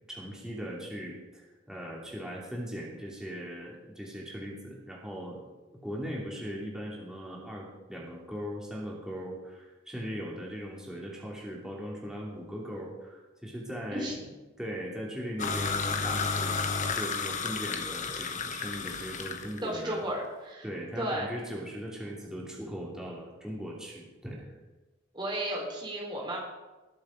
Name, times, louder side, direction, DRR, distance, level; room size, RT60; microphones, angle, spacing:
voice 1, 0.1-5.4 5.7-14.3 14.6-20.0 20.6-24.6, equal, 5° right, -4 dB, 2.8 m, -39 dB
sound 1, 15.4-19.6, left 5 dB, 40° left, 1.1 m, -32 dB
voice 2, 19.6-20.7 21.0-21.3 25.1-26.4, right 1 dB, 25° right, -1 dB, 3.8 m, -33 dB
20.5 x 7.3 x 5.0 m, 1.2 s
head